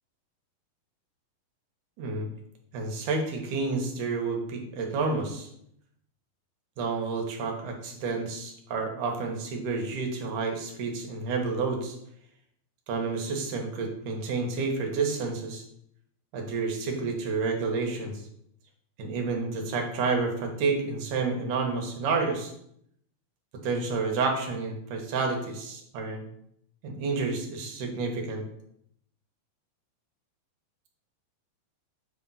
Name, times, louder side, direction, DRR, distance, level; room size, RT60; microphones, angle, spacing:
voice 1, 2.0-2.3 2.7-5.5 6.8-12.0 12.9-15.6 16.3-18.2 19.0-22.5 23.6-26.3 26.8-28.4, right 4 dB, 65° right, 2 dB, 2.4 m, -30 dB
8.1 x 3.6 x 5.5 m, 0.72 s
omnidirectional pair, 4.3 m